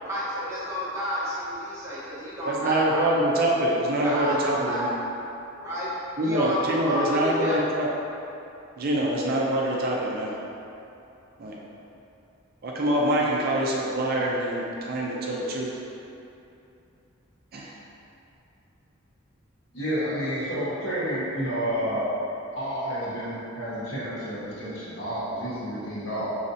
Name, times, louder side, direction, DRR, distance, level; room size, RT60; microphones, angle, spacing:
voice 1, 0.0-3.1 4.0-4.9 5.6-5.9 6.2-7.5, equal, 15° right, -10 dB, 1.0 m, -30 dB
voice 2, 2.4-4.9 6.2-7.9 8.8-10.3 11.4-11.6 12.6-15.7 17.5-17.8, right 1 dB, 45° right, -3 dB, 0.5 m, -25 dB
voice 3, 19.7-22.1 22.5-26.3, equal, 65° left, -9 dB, 1.3 m, -30 dB
5.3 x 3.2 x 2.7 m, 2.8 s
head